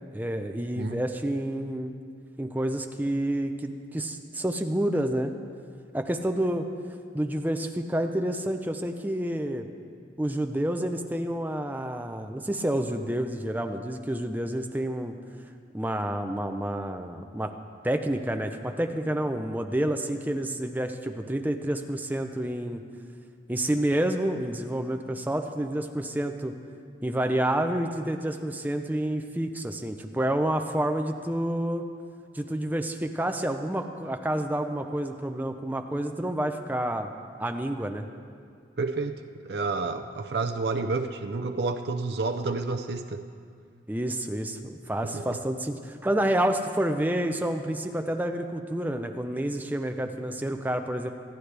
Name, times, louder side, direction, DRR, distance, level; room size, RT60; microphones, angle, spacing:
voice 1, 0.1-1.9 2.4-5.3 5.9-6.6 7.1-9.7 10.2-15.1 15.7-17.5 17.8-22.8 23.5-26.5 27.0-31.8 32.3-37.1 37.4-38.1 43.9-51.1, right 1 dB, 10° right, 5 dB, 0.6 m, -29 dB
voice 2, 38.8-43.2 45.1-45.4, right 3 dB, 65° right, 6 dB, 0.5 m, -30 dB
25.5 x 9.7 x 3.4 m, 2.2 s
head